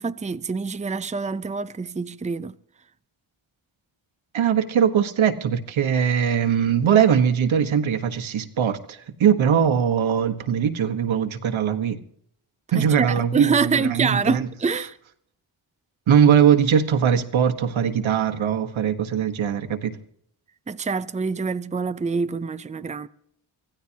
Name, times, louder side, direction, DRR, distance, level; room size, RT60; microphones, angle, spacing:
voice 1, 0.0-2.5 12.7-15.0 20.7-23.1, right 5 dB, 15° right, 0.6 m, -26 dB
voice 2, 4.3-12.0 12.7-14.5 16.1-19.9, right 8 dB, 75° right, 1.4 m, -21 dB
25.0 x 16.0 x 2.9 m
cardioid pair, 85°, 48 cm